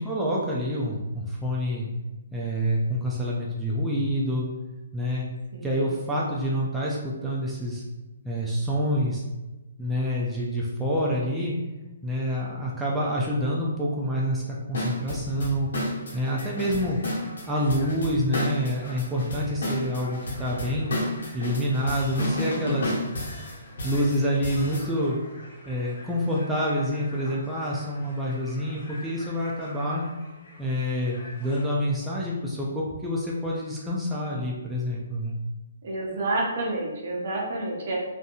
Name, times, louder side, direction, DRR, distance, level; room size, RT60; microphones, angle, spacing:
voice 1, 0.0-1.9 2.3-4.5 4.9-5.3 5.6-7.8 8.2-9.2 9.8-11.6 12.0-15.7 16.1-17.0 17.5-22.9 23.8-25.2 25.7-30.0 30.6-35.4, equal, 5° right, -6 dB, 0.3 m, -27 dB
voice 2, 5.5-5.9 35.8-38.0, right 2 dB, 55° right, -1 dB, 0.7 m, -29 dB
sound 1, 14.7-24.9, left 1 dB, 75° left, 0.9 m, -31 dB
sound 2, 16.1-31.7, left 1 dB, 40° left, 0.8 m, -48 dB
2.6 x 2.6 x 2.3 m, 1.1 s
hypercardioid pair, 155°, 0 cm